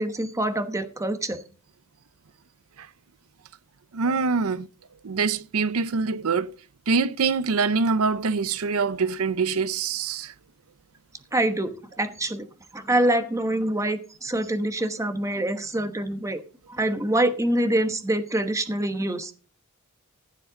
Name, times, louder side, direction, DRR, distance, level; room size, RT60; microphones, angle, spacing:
voice 1, 0.0-1.4 11.3-12.5 12.7-16.4 16.7-19.3, right 1 dB, 15° right, 1.1 m, -25 dB
voice 2, 3.9-4.7 5.0-6.5 6.9-10.3, right 4 dB, 75° right, 0.6 m, -24 dB
15.0 x 7.4 x 3.9 m
head